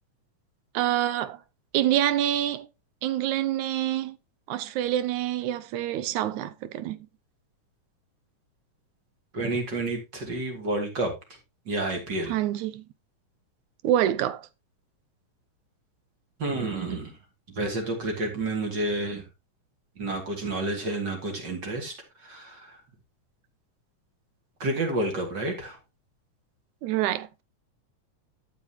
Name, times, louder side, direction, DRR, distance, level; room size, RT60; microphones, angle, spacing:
voice 1, 0.7-1.4 1.7-2.7 3.0-4.2 4.5-7.0 12.3-12.8 13.8-14.5 26.8-27.3, right 12 dB, 80° right, 2.1 m, -26 dB
voice 2, 9.3-11.1 11.7-12.3 16.4-17.1 17.5-19.2 20.0-21.9 22.2-22.8 24.6-25.8, right 2 dB, 35° right, 2.9 m, -30 dB
11.5 x 7.5 x 2.9 m
omnidirectional pair, 3.5 m